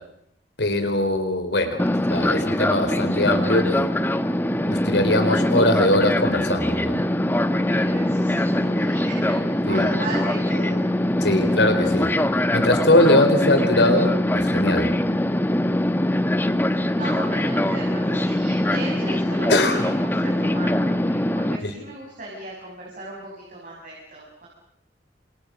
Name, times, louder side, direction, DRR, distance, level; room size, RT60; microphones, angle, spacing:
voice 1, 0.6-1.8 2.1-3.9 4.6-7.0 9.6-9.9 11.2-12.1 12.5-14.9 19.5-19.8 21.6-21.7, left 1 dB, 70° left, 8 dB, 4.3 m, -21 dB
Fixed-wing aircraft airplane, 1.8-21.6, left 1 dB, 10° left, 1.1 m, -22 dB
voice 2, 7.7-10.8 16.7-24.5, right 2 dB, 50° right, -3 dB, 6.3 m, -37 dB
30.0 x 26.0 x 6.5 m, 0.78 s
head